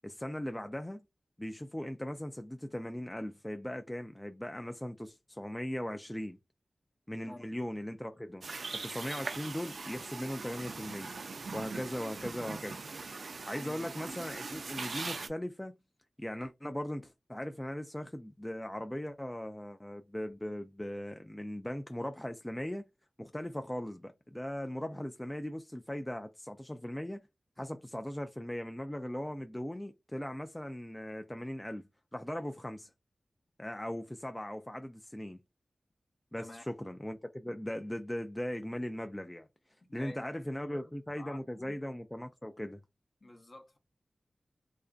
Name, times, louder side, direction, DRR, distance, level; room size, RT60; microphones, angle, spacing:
voice 1, 0.0-1.0 1.4-6.4 7.1-8.4 8.8-11.1 11.5-12.8 13.3-15.8 16.2-22.8 23.2-27.2 27.6-31.8 32.1-32.9 33.6-35.4 36.3-39.5 39.9-42.8, left 1 dB, 15° left, 0.3 m, -39 dB
sound 1, 8.4-15.3, right 4 dB, 75° right, 0.3 m, -41 dB
voice 2, 39.9-41.8 43.2-43.8, left 1 dB, 45° left, 0.7 m, -50 dB
2.4 x 2.1 x 2.3 m
cardioid pair, 50°, 0 cm